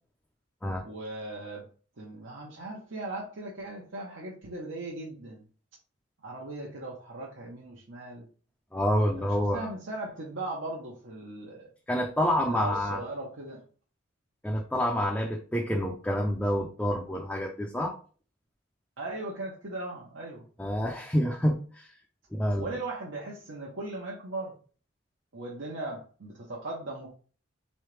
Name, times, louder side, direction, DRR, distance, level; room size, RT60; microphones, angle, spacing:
voice 1, 0.8-1.7 2.0-5.4 6.2-8.3 9.2-11.7 12.4-13.6 19.0-20.4 22.6-24.6 25.3-27.1, right 2 dB, 80° right, -4 dB, 0.9 m, -38 dB
voice 2, 8.7-9.7 11.9-13.0 14.4-18.0 20.6-21.9 22.3-22.7, equal, 5° left, -1 dB, 0.4 m, -28 dB
3.8 x 3.2 x 3.2 m, 0.40 s
head